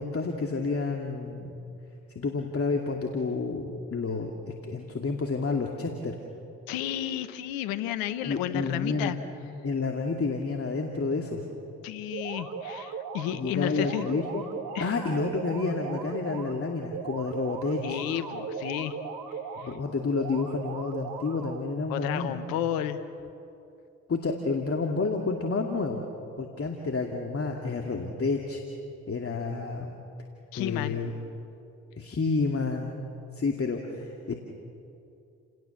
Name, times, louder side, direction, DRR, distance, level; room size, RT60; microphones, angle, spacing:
voice 1, 0.0-1.6 2.2-4.3 4.6-6.2 8.3-9.1 9.6-11.4 13.3-14.4 14.8-18.0 19.6-22.4 24.1-26.0 26.4-28.6 29.1-30.0 30.6-31.1 32.0-33.0 33.4-34.3, left 4 dB, 40° left, 3 dB, 2.5 m, -30 dB
voice 2, 6.7-9.2 11.8-14.1 14.7-14.9 17.8-19.0 19.6-19.8 21.9-23.0 30.5-31.0, left 11 dB, 80° left, 12 dB, 1.2 m, -32 dB
sound 1, 12.1-13.3 13.7-16.5 16.9-19.7 20.1-21.7, right 5 dB, 65° right, 2.5 m, -38 dB
30.0 x 18.5 x 7.2 m, 2.7 s
hypercardioid pair, 45°, 36 cm